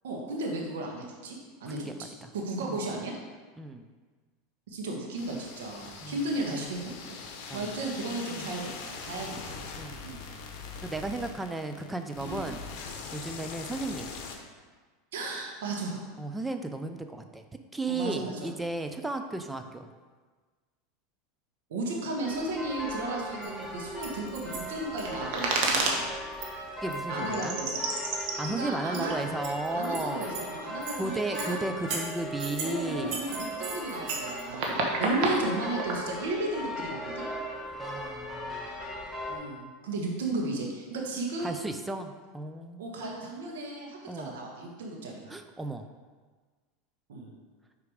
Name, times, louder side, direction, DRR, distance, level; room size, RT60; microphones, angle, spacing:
voice 1, 0.0-3.1 4.7-7.2 7.5-9.5 10.0-10.2 12.2-12.4 15.1-16.1 17.9-18.5 21.7-26.0 27.1-27.8 28.6-29.3 29.7-31.6 32.6-37.3 39.3-41.7 42.8-45.3 47.1-47.3, right 2 dB, 80° right, -1 dB, 1.3 m, -34 dB
voice 2, 1.7-2.3 2.6-2.8 3.6-3.9 6.0-6.2 7.5-7.7 8.3-8.5 9.8-10.0 10.8-12.6 13.1-14.1 16.2-17.4 17.7-19.9 26.8-27.6 28.1-30.3 31.0-33.2 37.7-38.7 41.4-43.0 44.1-44.3 45.3-45.9, right 2 dB, 10° right, 7 dB, 0.5 m, -34 dB
sound 1, 5.1-14.4, left 5 dB, 60° left, 1.0 m, -42 dB
sound 2, 22.2-39.4, equal, 10° left, 1.3 m, -38 dB
sound 3, 23.4-23.5 24.0-26.0 26.4-26.5 26.9-27.0 27.3-30.4 30.8-31.0 31.3-31.5 31.9-32.7 33.1-36.0, right 3 dB, 60° right, 1.3 m, -31 dB
5.1 x 4.7 x 4.9 m, 1.4 s
supercardioid pair, 115°, 0 cm